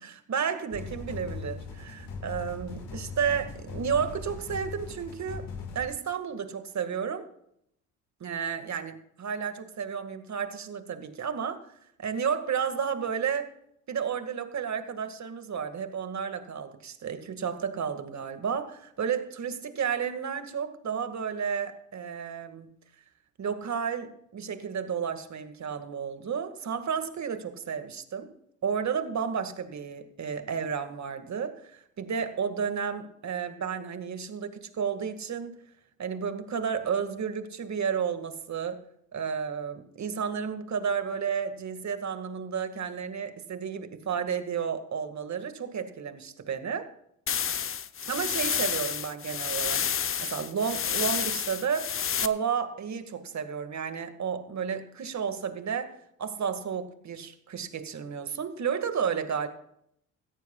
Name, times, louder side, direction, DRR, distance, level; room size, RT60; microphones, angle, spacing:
voice 1, 0.0-5.5 5.7-7.3 8.2-11.6 12.0-13.5 13.9-22.7 23.4-28.3 28.6-35.6 36.0-38.8 39.1-46.9 48.1-49.8 50.2-55.9 56.2-59.5, right 7 dB, 45° right, 9 dB, 1.9 m, -32 dB
sound 1, 0.7-5.9, left 4 dB, 55° left, 4.6 m, -40 dB
sound 2, 47.3-52.3, left 8 dB, 35° left, 0.8 m, -30 dB
18.5 x 14.0 x 2.4 m, 0.72 s
hypercardioid pair, 65°, 39 cm